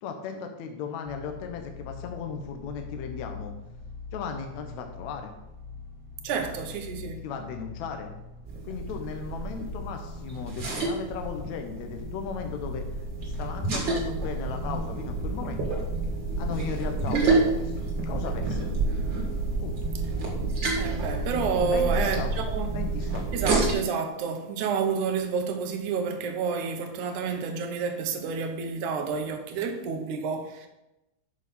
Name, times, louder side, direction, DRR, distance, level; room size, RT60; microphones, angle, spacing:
voice 1, 0.0-3.5 4.1-5.3 7.2-8.1 8.6-12.9 13.2-15.8 16.4-17.7 18.0-18.7 19.6-19.8 21.7-22.3 22.7-23.3, left 6 dB, 70° left, 1.9 m, -36 dB
sound 1, 1.0-13.8, left 5 dB, 5° right, 1.2 m, -43 dB
voice 2, 6.2-7.2 20.8-22.7 23.3-30.7, right 5 dB, 70° right, 2.3 m, -29 dB
sound 2, 8.5-23.7, right 3 dB, 40° right, 2.1 m, -29 dB
7.7 x 6.3 x 5.4 m
omnidirectional pair, 3.9 m